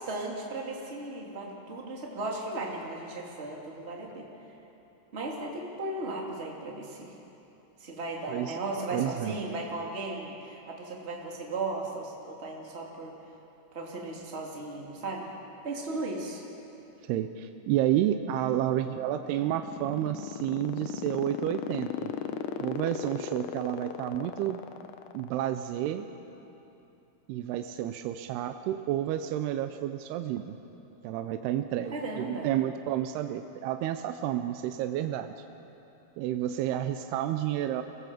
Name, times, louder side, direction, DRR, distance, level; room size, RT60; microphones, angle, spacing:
voice 1, 0.0-4.3 5.1-7.1 7.8-13.1 13.7-15.3 15.6-16.4 31.9-32.5, right 2 dB, 20° right, -2 dB, 2.1 m, -36 dB
voice 2, 8.9-9.4 17.1-22.1 22.6-24.6 25.1-26.1 27.3-30.6 31.0-35.3 36.2-37.8, right 12 dB, 80° right, 8 dB, 2.6 m, -30 dB
sound 1, 19.0-25.6, left 9 dB, 75° left, 1.9 m, -35 dB
25.0 x 17.5 x 7.5 m, 2.9 s
omnidirectional pair, 4.8 m